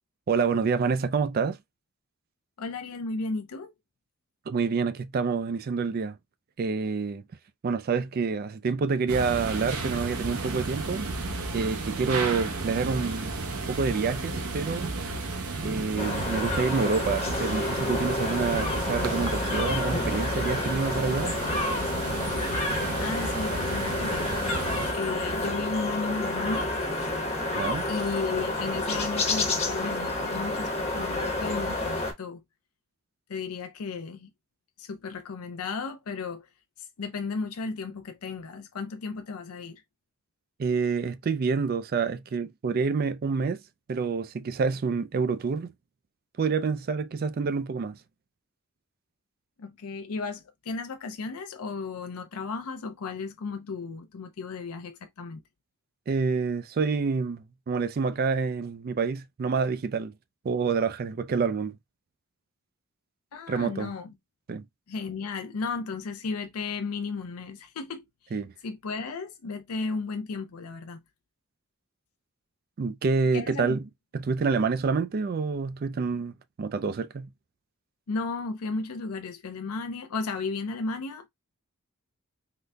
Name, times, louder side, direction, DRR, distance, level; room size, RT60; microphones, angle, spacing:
voice 1, 0.3-1.6 4.5-6.2 6.6-7.2 7.6-11.1 11.5-14.9 15.6-21.3 27.5-27.9 40.6-43.6 43.9-45.7 46.4-48.0 56.1-60.1 60.4-61.8 63.5-63.9 64.5-64.6 68.3-68.5 72.8-73.9 74.1-77.3, right 5 dB, 45° right, 0.3 m, -27 dB
voice 2, 2.6-3.7 23.0-24.4 24.9-26.7 27.9-32.4 33.3-34.3 34.8-36.5 36.8-39.8 49.6-55.4 63.3-64.1 64.9-68.3 68.6-71.0 73.3-73.8 78.1-81.3, left 4 dB, 90° left, 0.5 m, -34 dB
sound 1, 9.1-24.9, right 3 dB, 90° right, 0.7 m, -33 dB
sound 2, 16.0-32.1, left 2 dB, 30° left, 0.9 m, -29 dB
3.9 x 2.1 x 3.3 m
head